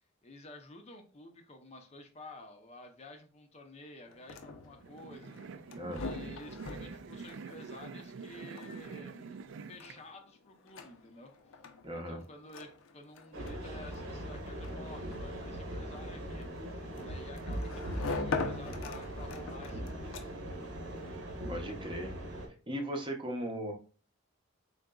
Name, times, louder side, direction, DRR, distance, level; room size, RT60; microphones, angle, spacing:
voice 1, 0.2-5.4 5.9-16.5 17.0-20.3, left 2 dB, 30° left, 5 dB, 0.5 m, -51 dB
sound 1, 4.1-20.6, left 3 dB, 80° left, 0.6 m, -43 dB
sound 2, 4.8-10.0, right 5 dB, 65° right, 0.3 m, -46 dB
voice 2, 11.8-12.2 21.5-22.1 22.7-23.7, equal, 25° right, 3 dB, 0.7 m, -37 dB
sound 3, 13.3-22.5, right 1 dB, 85° right, 1.1 m, -40 dB
3.9 x 3.7 x 2.3 m, 0.37 s
head